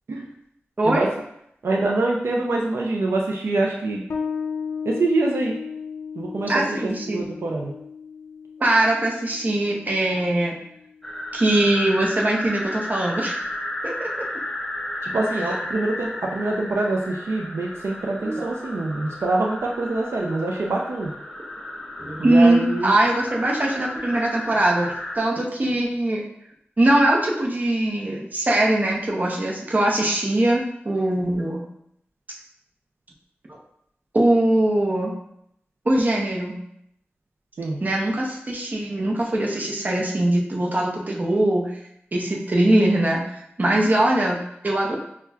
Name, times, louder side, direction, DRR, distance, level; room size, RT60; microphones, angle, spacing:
voice 1, 1.6-4.0 4.8-5.5 6.2-6.8 7.1-7.7 15.0-21.1 22.2-23.0 37.6-37.8, right 2 dB, 90° right, -1 dB, 0.4 m, -25 dB
Bass guitar, 4.1-11.3, left 6 dB, 75° left, 0.5 m, -35 dB
voice 2, 6.5-7.3 8.6-10.6 11.3-13.4 13.8-14.1 18.2-18.4 22.0-26.2 26.8-31.6 33.5-33.6 34.1-35.1 35.8-36.6 37.8-41.8 42.1-45.0, right 1 dB, 40° right, -2 dB, 0.7 m, -21 dB
sound 1, 11.0-25.2, left 1 dB, 5° left, 0.5 m, -33 dB
5.5 x 2.2 x 2.3 m, 0.74 s
wide cardioid pair, 80°, 4 cm